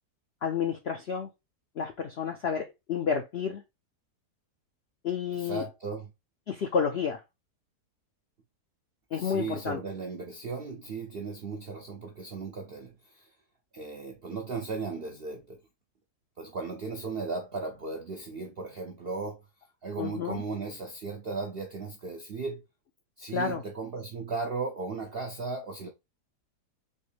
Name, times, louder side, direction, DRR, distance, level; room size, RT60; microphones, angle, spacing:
voice 1, 0.4-1.3 1.8-3.6 5.0-5.6 6.5-7.2 9.1-9.8 20.0-20.4 23.3-23.6, left 6 dB, 70° left, 0.6 m, -30 dB
voice 2, 5.3-6.1 9.1-13.3 13.7-15.6 16.4-19.4 19.8-22.6 23.2-25.9, right 4 dB, 65° right, 0.6 m, -36 dB
4.2 x 3.0 x 3.1 m
omnidirectional pair, 1.8 m